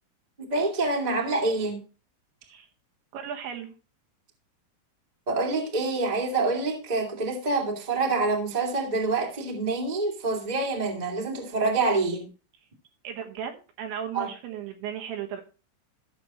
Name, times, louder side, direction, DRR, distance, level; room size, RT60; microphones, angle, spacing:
voice 1, 0.4-1.8 5.3-12.3 14.1-14.3, right 3 dB, 20° right, -1 dB, 1.1 m, -26 dB
voice 2, 3.1-3.7 13.0-15.4, right 8 dB, 75° right, 5 dB, 3.4 m, -36 dB
15.0 x 6.9 x 3.0 m, 0.34 s
omnidirectional pair, 5.7 m